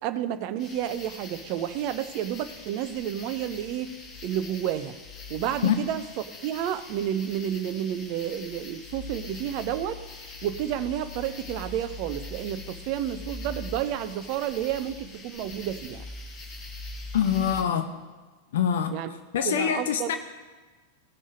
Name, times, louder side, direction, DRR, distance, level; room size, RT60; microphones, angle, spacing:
voice 1, 0.0-3.9 4.2-5.0 5.3-6.0 6.4-10.0 10.4-16.0 18.9-19.1 19.4-20.1, right 10 dB, 45° right, 12 dB, 0.7 m, -30 dB
sound 1, 0.6-17.6, left 3 dB, 30° left, 2.0 m, -42 dB
voice 2, 17.1-17.8 18.5-18.9 19.3-20.2, left 8 dB, 60° left, 8 dB, 0.8 m, -24 dB
17.0 x 6.3 x 5.1 m, 1.3 s
figure-of-eight pair, 90°, 0 cm